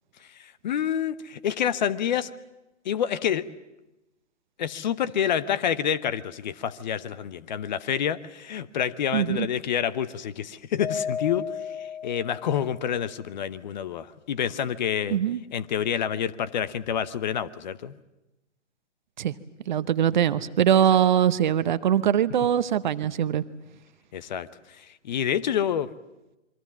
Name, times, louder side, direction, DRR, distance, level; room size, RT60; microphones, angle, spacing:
voice 1, 0.3-2.3 2.8-3.5 4.6-15.2 15.5-18.0 24.1-25.9, left 9 dB, 35° left, 16 dB, 0.9 m, -28 dB
voice 2, 9.1-9.5 15.1-15.4 19.2-19.3 19.7-23.4, right 9 dB, 40° right, 14 dB, 0.8 m, -22 dB
Mallet percussion, 10.8-13.1, left 7 dB, 50° left, 3.6 m, -34 dB
27.0 x 23.5 x 7.3 m, 0.98 s
figure-of-eight pair, 135°, 38 cm